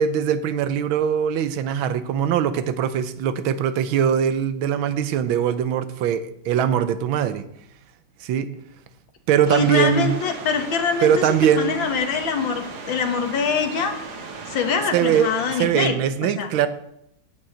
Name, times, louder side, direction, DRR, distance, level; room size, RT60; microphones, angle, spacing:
voice 1, 0.0-7.4 8.2-8.5 9.3-10.1 11.0-11.8 14.9-15.3 15.6-16.7, right 8 dB, 85° right, 12 dB, 1.5 m, -21 dB
sound 1, 9.4-15.6, right 4 dB, 55° right, 1.8 m, -37 dB
voice 2, 9.5-14.0 14.5-15.9 16.4-16.5, left 6 dB, 70° left, 6 dB, 1.9 m, -24 dB
8.9 x 6.4 x 8.3 m, 0.79 s
omnidirectional pair, 2.2 m